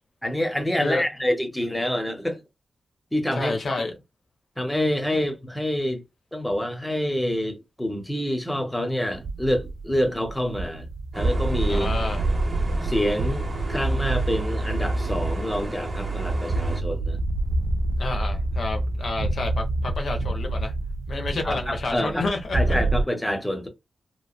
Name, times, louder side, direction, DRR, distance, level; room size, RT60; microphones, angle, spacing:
voice 1, 0.2-2.4 3.1-3.8 4.6-6.0 6.3-10.9 11.1-11.9 12.8-17.2 21.4-22.3 22.5-23.7, left 1 dB, 10° left, 0.8 m, -27 dB
voice 2, 3.3-3.9 11.7-12.2 18.0-20.7 21.1-22.8, left 3 dB, 70° left, 0.7 m, -29 dB
sound 1, 9.1-23.0, right 2 dB, 70° right, 0.3 m, -27 dB
sound 2, 11.1-16.8, right 2 dB, 40° right, 0.9 m, -36 dB
3.0 x 2.1 x 2.3 m
cardioid pair, 75°, 0 cm